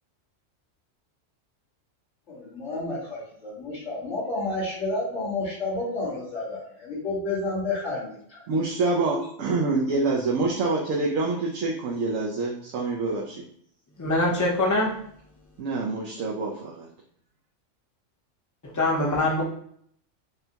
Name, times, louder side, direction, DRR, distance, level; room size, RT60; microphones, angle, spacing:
voice 1, 2.3-8.6 9.1-9.2, left 2 dB, 70° left, -8 dB, 2.2 m, -31 dB
voice 2, 8.5-13.4 15.6-16.9, right 3 dB, 85° right, -2 dB, 1.0 m, -26 dB
voice 3, 14.0-14.9 18.7-19.4, left 2 dB, 20° left, -3 dB, 0.6 m, -23 dB
5.3 x 2.2 x 2.8 m, 0.65 s
omnidirectional pair, 1.3 m